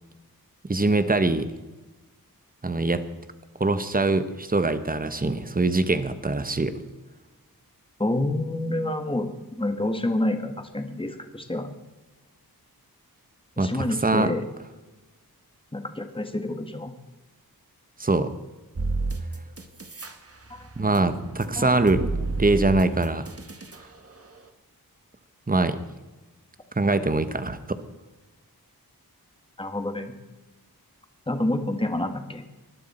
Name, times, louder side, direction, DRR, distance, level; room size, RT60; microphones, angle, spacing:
voice 1, 0.7-1.5 2.6-3.0 3.6-6.7 13.6-13.7 14.0-14.3 18.0-18.3 20.8-22.0 22.4-23.3 25.5-25.8 26.7-27.8, right 2 dB, 25° right, 11 dB, 1.1 m, -23 dB
voice 2, 8.0-11.7 13.6-14.5 15.7-16.9 20.5-20.7 21.6-21.8 29.6-30.1 31.3-32.4, left 1 dB, 15° left, 6 dB, 1.6 m, -28 dB
sound 1, 18.8-20.1 20.5-23.8, right 3 dB, 40° right, 1.4 m, -31 dB
20.0 x 11.5 x 4.3 m, 1.1 s
wide cardioid pair, 75°, 37 cm